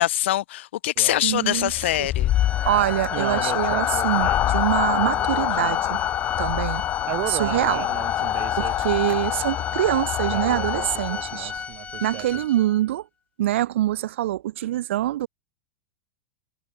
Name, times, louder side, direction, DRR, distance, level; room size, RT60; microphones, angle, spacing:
voice 1, 0.0-2.3, left 15 dB, 70° left, 1.6 m, -23 dB
sound 1, 1.0-12.5, right 29 dB, 50° right, 4.4 m, -36 dB
voice 2, 1.2-1.7 2.0-2.1 2.7-6.0 6.4-6.8 7.3-7.9 8.6-11.5 12.0-13.0 13.4-15.3, right 14 dB, 75° right, 1.2 m, -24 dB
sound 2, 1.6-11.6, left 13 dB, 35° left, 2.3 m, -25 dB
Organ, 2.3-12.9, left 6 dB, 20° left, 2.1 m, -36 dB
hypercardioid pair, 125°, 7 cm